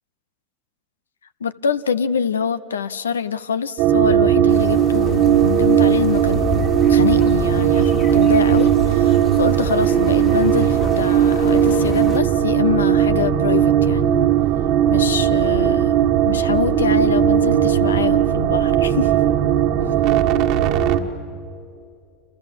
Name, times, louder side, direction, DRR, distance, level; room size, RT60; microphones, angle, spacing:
voice 1, 1.4-14.1 14.9-15.9 16.2-19.1, left 7 dB, 90° left, 15 dB, 0.7 m, -25 dB
sound 1, 3.8-21.0, right 10 dB, 60° right, 1.6 m, -17 dB
sound 2, 4.5-12.2, left 6 dB, 50° left, 2.9 m, -32 dB
28.5 x 27.5 x 7.6 m, 2.4 s
hypercardioid pair, 85°, 0 cm